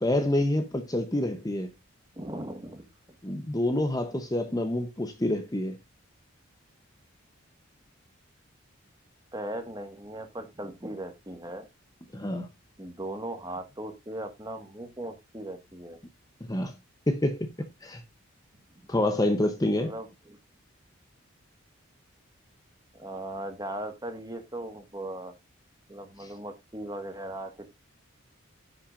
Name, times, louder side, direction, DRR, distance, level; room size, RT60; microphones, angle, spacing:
voice 1, 0.0-1.7 3.2-5.8 12.1-12.5 16.5-16.7 17.1-17.5 17.8-18.0 18.9-19.9 26.2-26.3, left 1 dB, 15° left, 0.7 m, -27 dB
voice 2, 2.2-2.8 3.3-3.4 9.3-11.6 12.8-16.0 19.7-20.4 22.9-25.3 25.9-27.7, right 1 dB, 20° right, 1.4 m, -38 dB
15.0 x 5.8 x 2.4 m
head